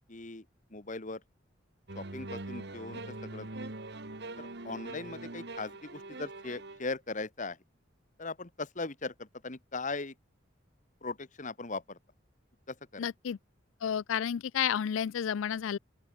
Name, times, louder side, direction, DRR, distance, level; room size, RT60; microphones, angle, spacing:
voice 1, 0.1-0.4 0.7-1.2 1.9-3.7 4.4-7.6 8.2-10.1 11.0-12.0 12.7-13.1, left 3 dB, 40° left, 1.5 m, -39 dB
sound 1, 1.9-6.8, right 2 dB, 60° right, 1.9 m, -43 dB
voice 2, 13.0-13.4 13.8-15.8, left 8 dB, 80° left, 0.4 m, -31 dB
open air
head